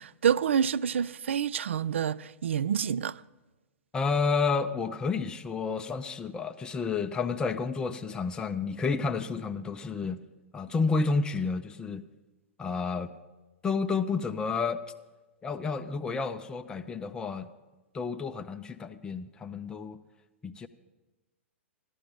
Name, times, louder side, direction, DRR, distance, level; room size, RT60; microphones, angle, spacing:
voice 1, 0.0-3.2, right 8 dB, 65° right, 0.3 m, -28 dB
voice 2, 3.9-10.2 10.5-12.0 12.6-13.1 13.6-14.8 15.4-17.5 17.9-20.0 20.4-20.7, left 4 dB, 10° left, 0.5 m, -30 dB
15.0 x 11.5 x 5.2 m
figure-of-eight pair, 110°, 7 cm